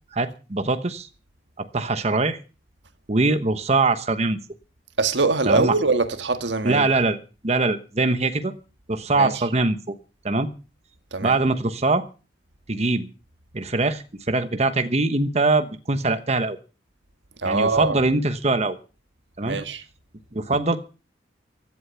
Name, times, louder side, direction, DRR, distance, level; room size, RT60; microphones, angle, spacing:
voice 1, 0.1-1.1 1.6-2.4 3.1-4.4 5.5-5.8 6.6-8.5 8.9-10.0 10.2-10.5 11.2-12.0 12.7-13.1 13.5-16.6 17.4-18.8 19.4-19.6 20.3-20.8, right 3 dB, 35° right, 1.1 m, -22 dB
voice 2, 5.0-6.9 9.2-9.3 11.1-11.4 17.4-18.0 19.4-19.8, right 3 dB, 75° right, 1.6 m, -23 dB
16.0 x 11.5 x 5.7 m
head